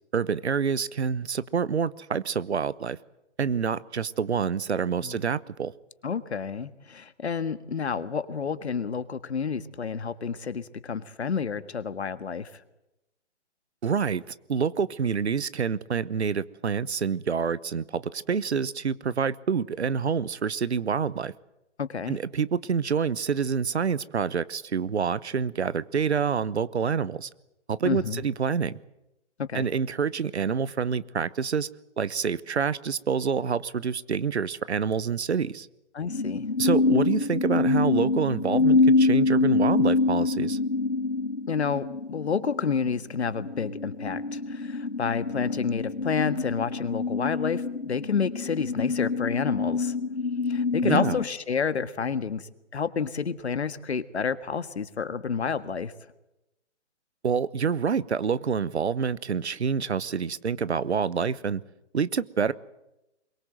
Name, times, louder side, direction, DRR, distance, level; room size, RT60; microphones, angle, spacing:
voice 1, 0.1-3.0 3.4-5.7 13.8-21.3 22.1-27.3 27.7-28.8 29.5-31.7 32.0-35.7 36.6-40.6 50.8-51.2 57.2-61.6 61.9-62.5, right 6 dB, 70° right, 19 dB, 1.0 m, -27 dB
voice 2, 6.0-12.5 21.8-22.2 27.8-28.2 29.5-29.7 35.9-36.5 41.5-49.9 50.5-55.9, left 6 dB, 65° left, 13 dB, 1.7 m, -29 dB
sound 1, 36.1-51.3, left 3 dB, 85° left, 1.8 m, -26 dB
23.5 x 22.5 x 7.8 m, 0.93 s
figure-of-eight pair, 140°, 35 cm